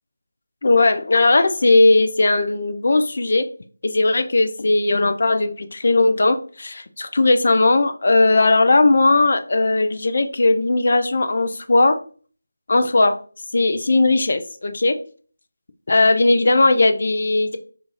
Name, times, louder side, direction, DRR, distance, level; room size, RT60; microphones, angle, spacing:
voice 1, 0.6-3.5 3.8-12.0 12.7-13.2 13.5-15.0 15.9-17.6, left 2 dB, 50° left, 8 dB, 0.3 m, -17 dB
2.4 x 2.4 x 3.0 m, 0.42 s
figure-of-eight pair, 160°, 0 cm